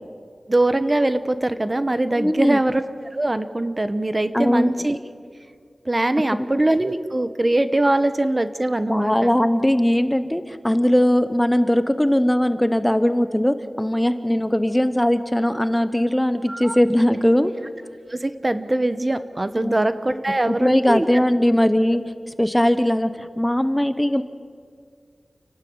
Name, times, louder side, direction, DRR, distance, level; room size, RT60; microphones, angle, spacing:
voice 1, 0.5-2.8 3.1-5.0 5.8-9.3 16.5-16.8 18.1-21.1, right 1 dB, 30° right, 11 dB, 1.0 m, -22 dB
voice 2, 2.2-2.6 4.3-4.7 6.4-6.5 8.9-17.5 19.6-19.8 20.5-22.0 22.4-24.2, left 1 dB, 10° left, 11 dB, 0.9 m, -19 dB
29.5 x 12.0 x 8.8 m, 2.1 s
wide cardioid pair, 75°, 0 cm